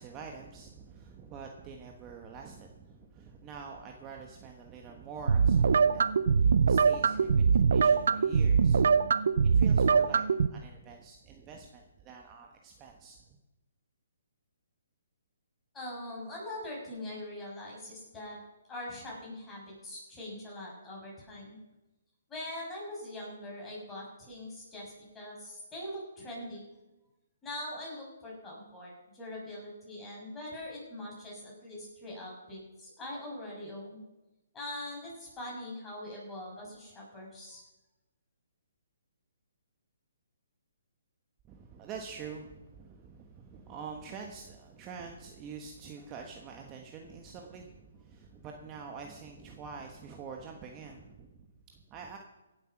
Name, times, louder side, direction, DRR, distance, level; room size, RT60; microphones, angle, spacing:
voice 1, 0.0-9.0 9.4-13.2 41.4-52.2, right 5 dB, 20° right, 2 dB, 1.4 m, -46 dB
sound 1, 5.3-10.5, right 6 dB, 70° right, 0.6 m, -23 dB
voice 2, 15.7-18.4 18.7-21.6 22.3-26.6 27.4-34.0 34.5-37.6, left 1 dB, 15° left, -4 dB, 6.5 m, -42 dB
17.0 x 8.1 x 6.0 m, 1.0 s
hypercardioid pair, 150°, 0 cm